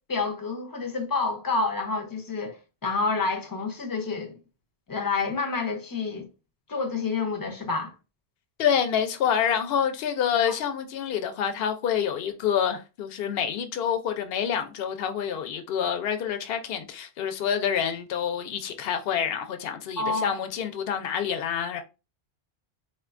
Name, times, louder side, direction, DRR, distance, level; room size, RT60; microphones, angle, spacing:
voice 1, 0.0-4.3 4.9-6.3 6.7-7.9 20.0-20.4, left 4 dB, 25° left, 0.5 m, -28 dB
voice 2, 8.6-21.8, left 8 dB, 70° left, 0.8 m, -27 dB
3.8 x 2.2 x 2.4 m
omnidirectional pair, 1.0 m